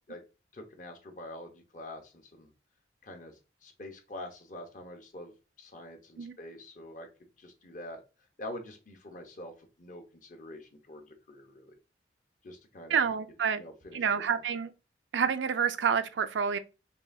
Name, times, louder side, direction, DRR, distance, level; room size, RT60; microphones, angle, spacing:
voice 1, 0.5-2.5 3.0-5.3 5.6-8.0 8.4-11.7 12.4-13.1 13.5-14.2, left 1 dB, 45° left, 0.9 m, -45 dB
voice 2, 12.9-13.6 13.9-14.7 15.1-16.6, right 7 dB, 80° right, 0.4 m, -28 dB
5.4 x 2.3 x 2.6 m
head